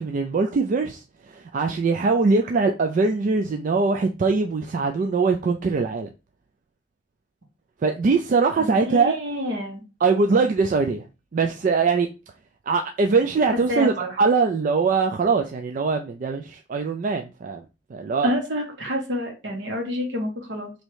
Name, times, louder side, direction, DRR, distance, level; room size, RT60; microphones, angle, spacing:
voice 1, 0.0-6.1 7.8-9.2 10.0-11.0 11.3-12.1 12.7-17.6 17.9-18.3, right 4 dB, 45° right, 0.3 m, -22 dB
voice 2, 8.6-9.8 13.7-14.2 18.2-20.7, left 1 dB, 70° right, 1.2 m, -28 dB
3.1 x 2.7 x 4.5 m
head